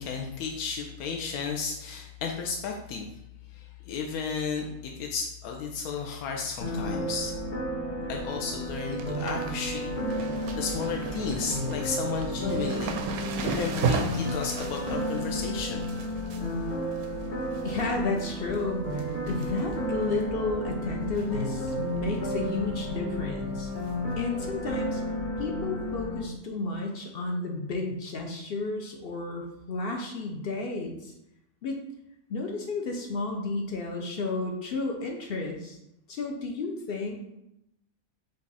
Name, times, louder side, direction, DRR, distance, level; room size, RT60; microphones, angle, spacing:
voice 1, 0.0-3.1 3.5-7.4 8.1-9.9 10.6-13.0 13.4-15.9, left 5 dB, 85° left, 1 dB, 1.1 m, -33 dB
sound 1, 6.6-26.2, equal, 40° left, 1.0 m, -32 dB
sound 2, 8.0-8.4 8.6-17.8 18.2-18.6 18.9-19.8 20.1-20.2 21.1-21.4 21.7-21.8 22.2-22.3 23.8-23.9 24.7-24.8, right 5 dB, 80° right, 1.0 m, -36 dB
voice 2, 17.6-23.7 24.2-25.0 25.4-31.1 31.6-31.8 32.3-35.8 36.1-37.4, left 3 dB, 60° left, 2 dB, 0.6 m, -32 dB
5.2 x 2.5 x 4.0 m, 0.83 s
omnidirectional pair, 1.5 m